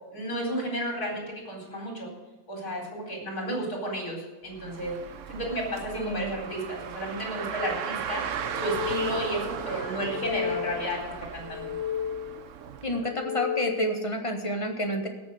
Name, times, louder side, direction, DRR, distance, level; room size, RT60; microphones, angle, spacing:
voice 1, 0.1-2.1 2.5-5.0 5.3-8.3 8.5-11.7, equal, 70° left, -1 dB, 4.7 m, -32 dB
Car, 4.5-13.1, right 8 dB, 60° right, 1.0 m, -36 dB
voice 2, 5.9-6.2 12.8-15.1, equal, 20° left, 3 dB, 1.6 m, -29 dB
sound 1, 8.4-9.5 9.9-11.0 11.4-12.5 12.9-14.1, left 9 dB, 45° left, 2.0 m, -34 dB
17.0 x 7.0 x 6.5 m, 1.2 s
omnidirectional pair, 1.7 m